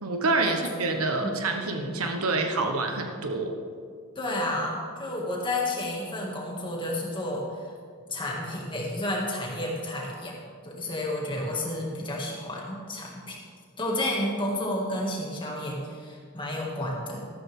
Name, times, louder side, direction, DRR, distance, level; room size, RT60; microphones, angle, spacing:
voice 1, 0.0-3.5, right 3 dB, 85° right, 4 dB, 1.3 m, -27 dB
voice 2, 4.2-7.5 8.1-10.3 10.6-13.4 13.8-17.3, left 1 dB, 25° left, -3 dB, 2.4 m, -31 dB
13.5 x 13.0 x 3.8 m, 2.1 s
head